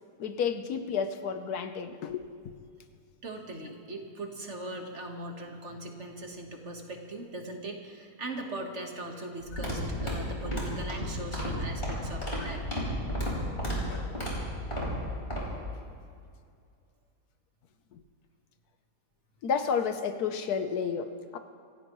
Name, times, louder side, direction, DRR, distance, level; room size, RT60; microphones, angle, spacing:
voice 1, 0.2-2.5 13.9-14.2 17.9-18.0 19.4-21.4, left 6 dB, 70° left, 8 dB, 1.3 m, -31 dB
voice 2, 3.2-12.7, right 1 dB, 45° right, 2 dB, 1.7 m, -40 dB
sound 1, 9.4-15.4, equal, 35° left, 4.2 m, -33 dB
26.5 x 15.5 x 3.1 m, 2.3 s
omnidirectional pair, 1.7 m